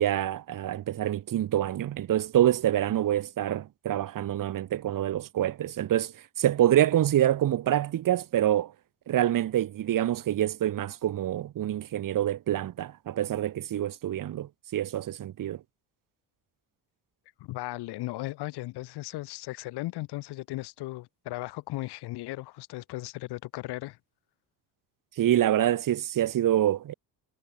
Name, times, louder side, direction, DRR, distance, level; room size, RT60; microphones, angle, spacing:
voice 1, 0.0-6.1 6.4-8.7 9.1-15.6 25.2-26.9, right 12 dB, 55° right, 1.7 m, -26 dB
voice 2, 17.4-24.0, left 18 dB, 85° left, 2.2 m, -36 dB
cardioid pair, 115°, 39 cm